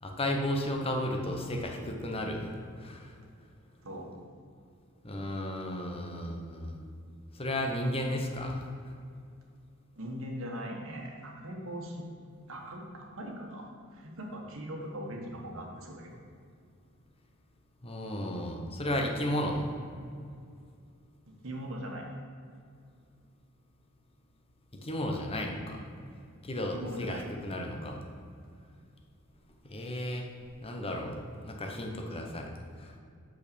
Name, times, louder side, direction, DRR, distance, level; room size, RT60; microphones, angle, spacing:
voice 1, 0.0-2.5 2.8-3.1 5.0-6.8 7.3-8.6 17.8-19.7 24.8-25.8 26.4-28.0 29.6-30.3 30.6-31.2 31.4-32.5 32.8-32.9, left 1 dB, 25° left, 2 dB, 0.9 m, -33 dB
voice 2, 3.8-4.2 10.0-12.0 12.5-13.6 13.9-16.2 21.4-22.0 26.7-27.3, equal, 65° right, 0 dB, 1.5 m, -40 dB
6.5 x 5.6 x 6.9 m, 2.3 s
head